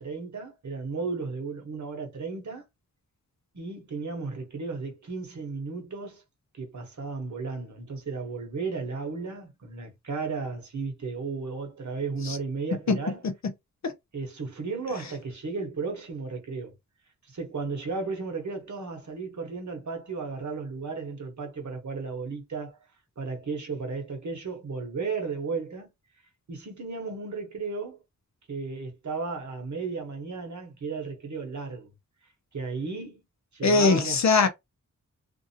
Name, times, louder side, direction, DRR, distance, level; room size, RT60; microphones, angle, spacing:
voice 1, 0.0-2.6 3.5-6.2 6.5-13.2 14.1-16.7 17.3-22.8 23.2-25.9 26.5-28.0 28.5-31.9 32.5-33.2 33.5-34.2, right 4 dB, 60° right, 1.1 m, -34 dB
voice 2, 33.6-34.5, left 4 dB, 55° left, 0.7 m, -21 dB
2.6 x 2.5 x 2.7 m
wide cardioid pair, 95°, 32 cm